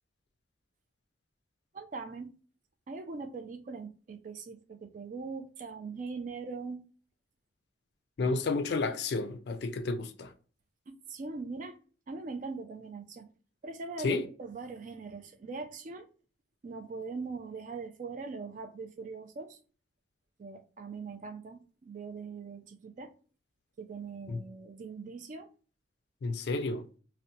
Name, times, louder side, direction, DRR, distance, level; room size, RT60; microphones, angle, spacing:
voice 1, 1.7-2.3 2.9-6.8 10.9-11.8 12.1-13.3 13.6-16.1 16.6-19.6 20.4-23.1 23.8-25.5, right 4 dB, 40° right, 0.3 m, -41 dB
voice 2, 8.2-10.3 14.0-14.2 24.3-24.4 26.2-26.8, left 3 dB, 55° left, 0.3 m, -31 dB
2.7 x 2.1 x 2.6 m
head